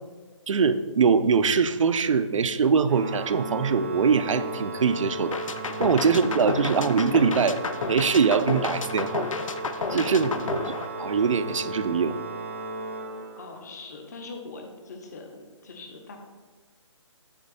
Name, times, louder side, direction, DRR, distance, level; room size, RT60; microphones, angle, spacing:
voice 1, 0.5-5.4 5.8-7.6 7.9-9.3 9.9-10.3 11.0-12.1, right 5 dB, 75° right, 12 dB, 0.5 m, -22 dB
Organ, 2.9-13.8, right 2 dB, 25° right, 0.4 m, -35 dB
sound 1, 5.3-11.5, left 5 dB, 80° left, 0.6 m, -32 dB
voice 2, 9.8-10.5 12.5-16.2, left 2 dB, 30° left, 3 dB, 0.9 m, -43 dB
8.7 x 4.5 x 4.2 m, 1.3 s
hypercardioid pair, 170°, 16 cm